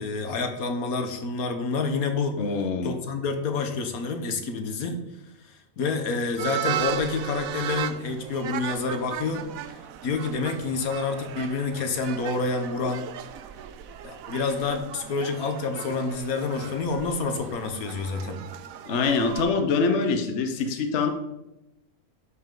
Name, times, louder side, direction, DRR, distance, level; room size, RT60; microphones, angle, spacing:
voice 1, 0.0-2.4 2.8-5.0 5.4-13.1 14.0-18.4, left 4 dB, 75° left, 6 dB, 1.5 m, -28 dB
voice 2, 2.4-3.0 18.9-21.1, left 4 dB, 55° left, 6 dB, 1.1 m, -24 dB
sound 1, 6.4-19.5, right 10 dB, 75° right, 1.0 m, -36 dB
12.5 x 5.5 x 3.8 m, 0.91 s
omnidirectional pair, 1.5 m